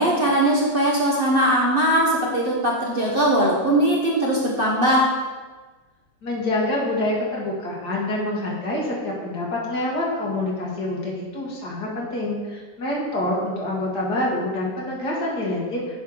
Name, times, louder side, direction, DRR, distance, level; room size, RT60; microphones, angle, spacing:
voice 1, 0.0-5.1, right 1 dB, 35° right, -3 dB, 1.1 m, -20 dB
voice 2, 6.2-16.0, left 1 dB, 65° left, -4 dB, 2.5 m, -26 dB
8.8 x 5.7 x 5.0 m, 1.3 s
omnidirectional pair, 1.9 m